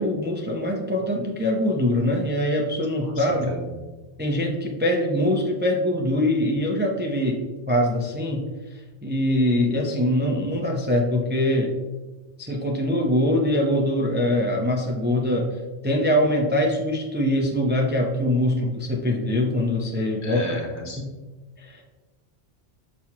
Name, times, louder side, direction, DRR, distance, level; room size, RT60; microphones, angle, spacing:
voice 1, 0.0-3.5 4.2-7.4 7.7-8.4 9.0-11.7 12.4-15.6 15.8-20.4 21.0-21.1 21.6-22.0, left 1 dB, 15° right, 1 dB, 0.5 m, -23 dB
voice 2, 3.0-3.6 20.2-21.0, left 1 dB, 70° left, 1 dB, 1.4 m, -34 dB
6.2 x 5.8 x 2.9 m, 1.2 s
omnidirectional pair, 1.2 m